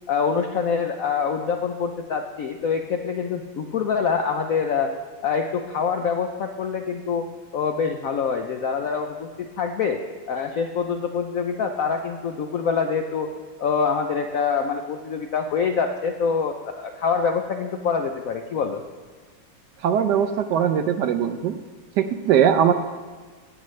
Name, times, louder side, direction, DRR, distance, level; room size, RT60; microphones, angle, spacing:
voice 1, 0.1-4.9 5.2-7.3 7.5-13.3 13.6-18.8, left 6 dB, 75° left, 5 dB, 0.7 m, -25 dB
voice 2, 19.8-21.6 22.0-22.7, right 8 dB, 75° right, 9 dB, 1.0 m, -20 dB
17.0 x 8.1 x 3.2 m, 1.5 s
omnidirectional pair, 2.1 m